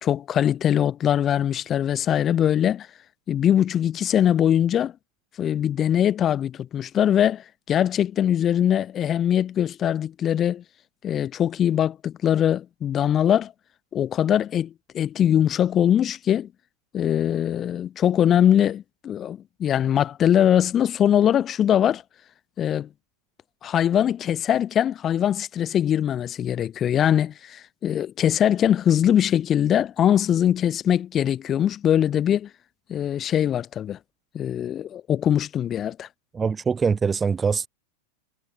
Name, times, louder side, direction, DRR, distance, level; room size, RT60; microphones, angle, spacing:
voice 1, 0.0-2.9 3.3-4.9 5.4-10.6 11.0-13.5 13.9-16.5 16.9-22.0 22.6-22.9 23.6-32.5 32.9-34.0 34.3-36.1, left 10 dB, 25° left, 3.6 m, -22 dB
voice 2, 36.3-37.7, right 5 dB, 15° right, 1.1 m, -23 dB
figure-of-eight pair, 90°, 0 cm